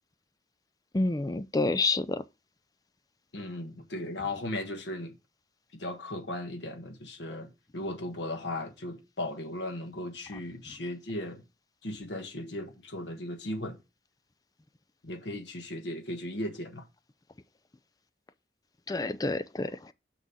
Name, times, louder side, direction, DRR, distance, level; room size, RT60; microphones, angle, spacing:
voice 1, 0.9-2.2 18.9-19.9, left 3 dB, 20° left, 0.4 m, -28 dB
voice 2, 3.3-5.1 5.7-11.4 11.8-13.8 15.0-16.9, left 1 dB, 85° left, 1.4 m, -37 dB
6.2 x 6.2 x 4.0 m
head